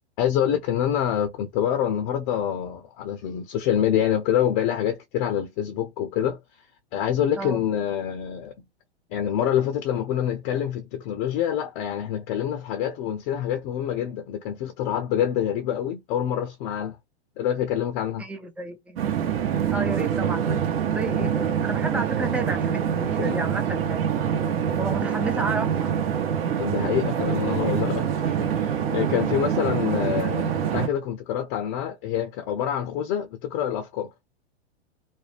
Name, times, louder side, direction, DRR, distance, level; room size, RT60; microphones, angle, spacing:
voice 1, 0.2-6.4 6.9-8.5 9.1-17.0 17.4-18.2 23.2-23.4 26.6-34.1, left 10 dB, 40° left, 0.6 m, -26 dB
voice 2, 7.4-7.7 18.2-19.0 19.7-25.9, right 2 dB, 5° right, 0.4 m, -32 dB
sound 1, 19.0-30.9, right 8 dB, 60° right, 0.9 m, -25 dB
2.5 x 2.1 x 3.2 m
hypercardioid pair, 105°, 33 cm